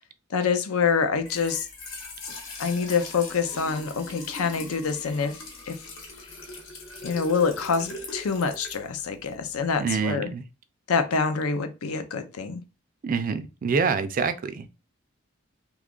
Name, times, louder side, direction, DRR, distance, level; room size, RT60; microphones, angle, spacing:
voice 1, 0.3-1.7 2.6-5.4 5.7-5.8 7.0-10.3 10.9-12.6, left 5 dB, 80° left, 0.5 m, -26 dB
Trickle dribble / Fill (with liquid), 1.1-9.9, left 2 dB, 60° left, 1.1 m, -41 dB
voice 2, 9.8-10.4 13.0-14.7, right 5 dB, 40° right, 0.3 m, -26 dB
2.9 x 2.3 x 3.6 m
head